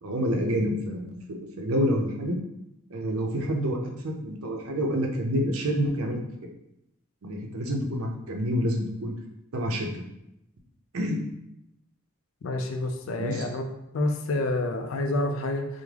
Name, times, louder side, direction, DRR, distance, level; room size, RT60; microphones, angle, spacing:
voice 1, 0.0-2.4 2.9-6.2 7.2-9.2 9.5-10.1 10.9-11.2 13.2-13.5, equal, 75° right, 1 dB, 0.5 m, -28 dB
voice 2, 12.4-13.7 13.9-15.7, left 2 dB, 65° left, 4 dB, 0.4 m, -28 dB
3.5 x 2.1 x 3.2 m, 0.83 s
head